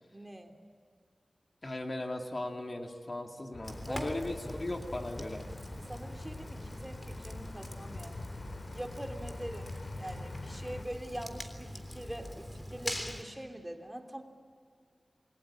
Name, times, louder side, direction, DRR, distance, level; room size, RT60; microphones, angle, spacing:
voice 1, 0.1-0.6 3.9-4.1 5.9-8.3 8.7-14.2, right 1 dB, 10° right, 4 dB, 3.1 m, -43 dB
voice 2, 1.6-5.5, left 2 dB, 45° left, 3 dB, 2.4 m, -37 dB
sound 1, 3.5-10.8, left 3 dB, 80° left, 2.5 m, -46 dB
Fire, 3.6-13.2, left 1 dB, 20° left, 3.5 m, -43 dB
28.5 x 21.5 x 8.7 m, 2.1 s
wide cardioid pair, 75°, 0 cm